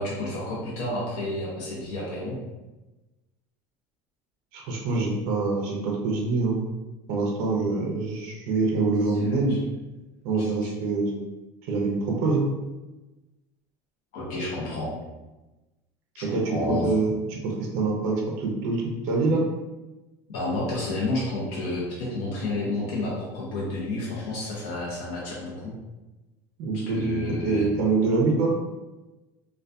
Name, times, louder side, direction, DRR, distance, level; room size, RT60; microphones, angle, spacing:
voice 1, 0.0-2.4 9.1-9.6 10.4-10.7 14.1-14.9 16.4-16.9 20.3-25.8 26.9-27.7, left 2 dB, 90° left, -6 dB, 0.7 m, -31 dB
voice 2, 4.5-6.6 7.1-9.6 10.2-11.1 11.7-12.4 16.2-19.4 26.6-28.5, right 3 dB, 60° right, -1 dB, 0.5 m, -25 dB
2.5 x 2.2 x 2.2 m, 1.1 s
cardioid pair, 170°, 9 cm